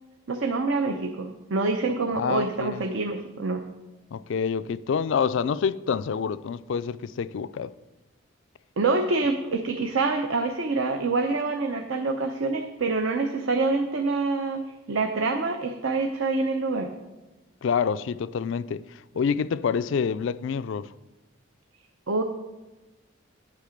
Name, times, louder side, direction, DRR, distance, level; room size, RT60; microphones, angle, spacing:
voice 1, 0.3-3.6 8.8-14.6 14.9-16.9 22.1-22.2, right 3 dB, 70° right, 0.7 m, -26 dB
voice 2, 2.1-2.8 4.1-7.7 17.6-18.8 19.2-20.9, left 6 dB, 60° left, 0.3 m, -27 dB
8.4 x 8.3 x 5.1 m
head